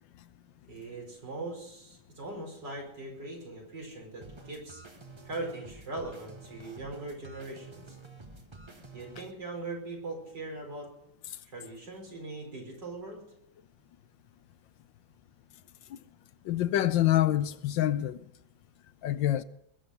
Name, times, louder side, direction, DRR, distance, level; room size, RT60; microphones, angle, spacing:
voice 1, 0.7-4.8 5.3-8.0 8.9-10.9 11.4-13.3, right 2 dB, 65° right, 5.6 m, -40 dB
sound 1, 4.2-9.3, right 3 dB, 25° right, 0.7 m, -50 dB
voice 2, 16.4-18.2 19.0-19.4, left 13 dB, 80° left, 1.5 m, -26 dB
21.5 x 7.2 x 7.9 m
omnidirectional pair, 2.1 m